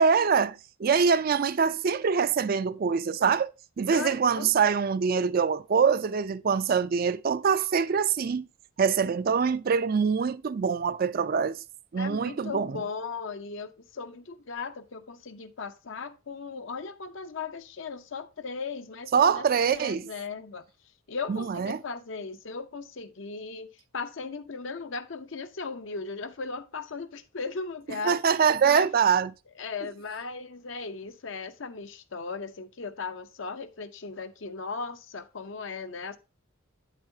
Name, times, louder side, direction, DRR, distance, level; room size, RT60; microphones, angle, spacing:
voice 1, 0.0-3.5 3.8-8.5 8.8-11.6 11.9-12.8 19.1-20.0 21.3-21.8 28.0-29.3, right 6 dB, 45° right, 0.4 m, -24 dB
voice 2, 3.9-4.5 12.0-20.6 21.1-28.2 28.6-28.9 29.6-36.2, left 4 dB, 65° left, 0.7 m, -37 dB
8.8 x 7.4 x 2.7 m
head